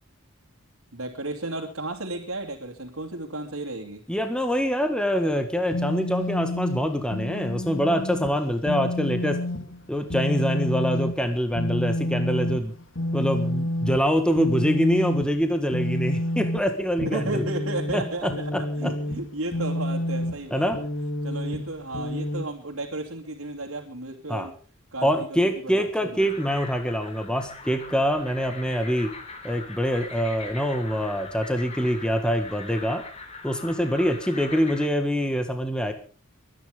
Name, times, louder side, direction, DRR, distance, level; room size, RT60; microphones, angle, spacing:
voice 1, 0.9-4.0 17.0-20.9 21.2-24.5 24.9-25.4 25.6-26.3, right 2 dB, 85° right, -1 dB, 2.8 m, -33 dB
voice 2, 4.1-9.4 9.9-12.7 13.1-17.4 17.9-18.9 20.5-20.8 24.3-24.5 25.0-29.1 29.4-33.0 33.4-35.9, equal, 5° left, 6 dB, 1.7 m, -25 dB
sound 1, 5.7-22.4, left 1 dB, 65° left, 2.3 m, -29 dB
sound 2, 26.2-34.9, left 3 dB, 30° left, 3.7 m, -41 dB
23.5 x 10.5 x 5.2 m, 0.38 s
head